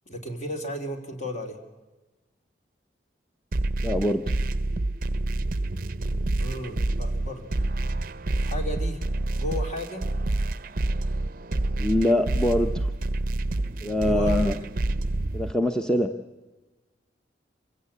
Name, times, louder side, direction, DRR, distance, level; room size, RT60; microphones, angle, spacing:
voice 1, 0.0-1.6 6.4-7.5 8.4-9.0 9.4-10.1 14.0-14.6, left 1 dB, 40° left, 5 dB, 3.0 m, -34 dB
sound 1, 3.5-15.5, right 2 dB, 50° right, 0.6 m, -28 dB
voice 2, 3.8-4.2 11.8-12.9 13.8-14.5 15.3-16.1, left 1 dB, 5° left, 6 dB, 0.8 m, -23 dB
25.0 x 16.5 x 8.5 m, 1.2 s
head